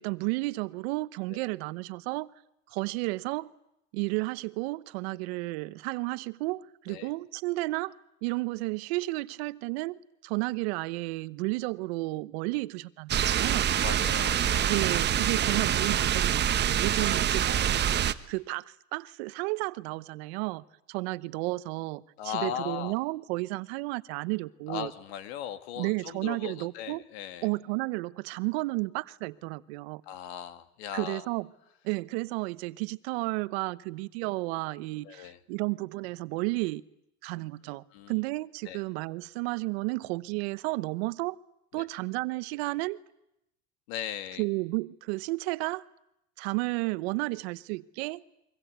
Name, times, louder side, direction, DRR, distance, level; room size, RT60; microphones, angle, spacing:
voice 1, 0.0-2.3 2.7-3.5 3.9-13.7 14.7-24.9 25.8-27.0 27.4-30.0 30.9-31.5 31.8-36.8 37.2-41.4 41.7-43.0 44.4-45.9 46.4-48.3, right 23 dB, 70° right, 1.0 m, -32 dB
sound 1, 13.1-18.1, right 10 dB, 30° right, 1.1 m, -25 dB
voice 2, 13.8-14.7 22.2-23.0 24.7-27.5 30.0-31.3 35.0-35.4 37.9-38.2 38.7-38.8 41.7-41.9 43.9-44.5, left 10 dB, 75° left, 2.3 m, -38 dB
28.5 x 24.0 x 8.1 m
supercardioid pair, 110°, 32 cm